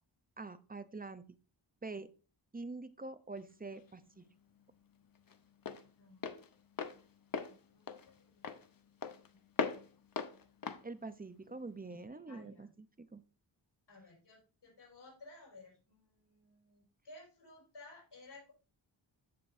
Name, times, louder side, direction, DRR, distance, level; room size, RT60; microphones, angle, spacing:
voice 1, 0.4-1.2 1.8-2.1 2.5-4.2 10.8-13.2, right 3 dB, 20° right, 12 dB, 0.6 m, -45 dB
Walk footsteps, 3.4-12.1, left 6 dB, 50° left, 0.8 m, -42 dB
voice 2, 6.0-6.4 7.4-8.6 12.1-12.7 13.9-18.5, left 2 dB, 65° left, -2 dB, 5.2 m, -57 dB
14.5 x 5.2 x 2.6 m, 0.34 s
wide cardioid pair, 85°, 46 cm